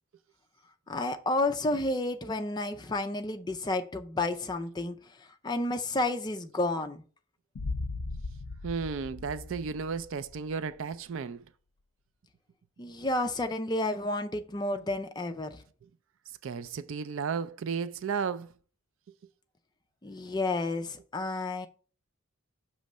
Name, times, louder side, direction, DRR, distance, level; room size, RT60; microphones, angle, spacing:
voice 1, 0.9-7.0 12.8-15.6 20.0-21.7, left 2 dB, 20° left, 0.4 m, -31 dB
sound 1, 7.5-10.5, left 3 dB, 85° left, 0.5 m, -38 dB
voice 2, 8.6-11.5 16.4-18.5, right 5 dB, 65° right, 0.4 m, -34 dB
6.2 x 3.1 x 5.4 m
head